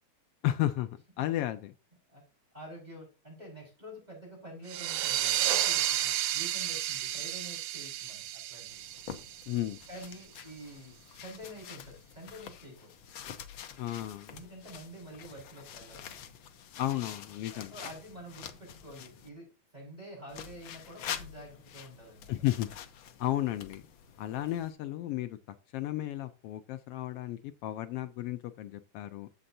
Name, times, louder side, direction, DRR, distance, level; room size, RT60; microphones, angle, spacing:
voice 1, 0.4-0.9 1.2-1.7 9.5-9.8 13.8-14.3 16.8-17.7 22.3-22.7 23.2-23.8 24.2-25.4 25.7-29.3, left 14 dB, 90° left, 10 dB, 1.3 m, -33 dB
voice 2, 2.5-8.8 9.9-12.9 14.3-16.2 17.5-22.3, equal, 15° right, -3 dB, 4.8 m, -48 dB
sound 1, 4.7-10.0, right 12 dB, 70° right, 1.6 m, -32 dB
sound 2, 8.7-19.3 20.3-24.7, left 9 dB, 75° left, 1.2 m, -46 dB
11.5 x 7.8 x 2.7 m, 0.30 s
omnidirectional pair, 3.3 m